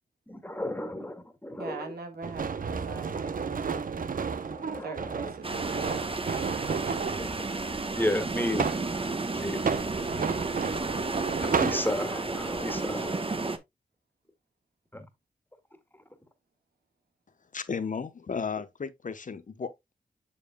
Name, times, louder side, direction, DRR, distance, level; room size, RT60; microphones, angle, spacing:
voice 1, 0.3-1.9 4.5-4.9 7.2-7.4 7.9-8.7 9.3-9.6 11.4-13.2 14.9-15.0, left 1 dB, 10° left, 1.8 m, -33 dB
voice 2, 1.6-4.1 4.8-6.1, right 3 dB, 90° right, 1.5 m, -41 dB
sound 1, 2.2-7.3 8.1-8.9 9.5-11.8, right 5 dB, 60° right, 0.7 m, -31 dB
sound 2, 5.4-13.6, right 3 dB, 35° right, 1.0 m, -32 dB
voice 3, 17.5-19.9, left 5 dB, 55° left, 0.8 m, -34 dB
7.1 x 6.8 x 2.2 m
cardioid pair, 45°, 16 cm